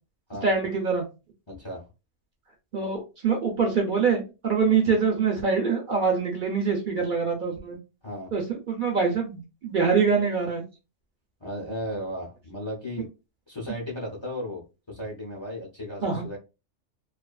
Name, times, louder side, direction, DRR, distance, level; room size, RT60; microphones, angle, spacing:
voice 1, 0.4-1.0 2.7-7.8 8.3-10.6 16.0-16.2, right 5 dB, 55° right, 1 dB, 0.7 m, -24 dB
voice 2, 1.5-1.8 8.0-8.3 11.4-13.1 13.5-16.4, equal, 30° left, -1 dB, 0.6 m, -35 dB
2.6 x 2.4 x 2.3 m, 0.28 s
omnidirectional pair, 1.2 m